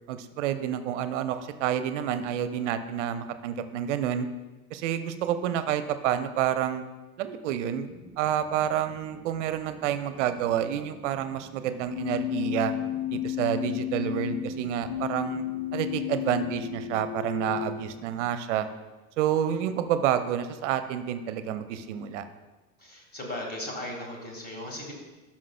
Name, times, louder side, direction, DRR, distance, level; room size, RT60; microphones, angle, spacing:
voice 1, 0.1-4.3 4.7-6.8 7.2-7.9 8.2-12.7 13.1-15.5 15.7-18.7 19.2-22.2, right 10 dB, 55° right, 11 dB, 0.6 m, -29 dB
sound 1, 7.9-18.2, right 1 dB, 5° right, 0.5 m, -51 dB
Keyboard (musical), 11.9-17.8, left 11 dB, 75° left, 0.8 m, -33 dB
voice 2, 22.8-24.9, left 1 dB, 20° left, 0 dB, 1.9 m, -37 dB
12.0 x 5.8 x 2.3 m, 1.1 s
figure-of-eight pair, 80°, 44 cm